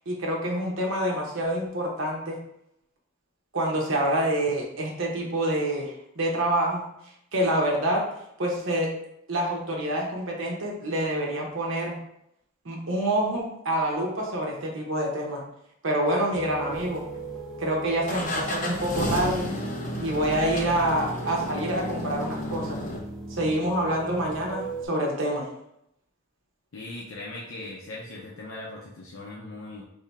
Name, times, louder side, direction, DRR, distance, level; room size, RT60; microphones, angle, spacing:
voice 1, 0.1-2.4 3.5-6.8 7.3-8.0 8.4-8.9 9.3-12.0 12.6-15.4 15.8-17.0 17.6-19.5 20.0-22.8 23.3-25.5, right 1 dB, 65° right, -1 dB, 0.9 m, -27 dB
sound 1, 16.3-24.9, right 3 dB, ahead, 0.7 m, -39 dB
sound 2, 16.7-17.4 18.1-23.0, left 1 dB, 40° left, 0.7 m, -32 dB
voice 2, 26.7-29.8, left 2 dB, 75° left, -4 dB, 0.7 m, -39 dB
3.6 x 2.8 x 4.5 m, 0.79 s
head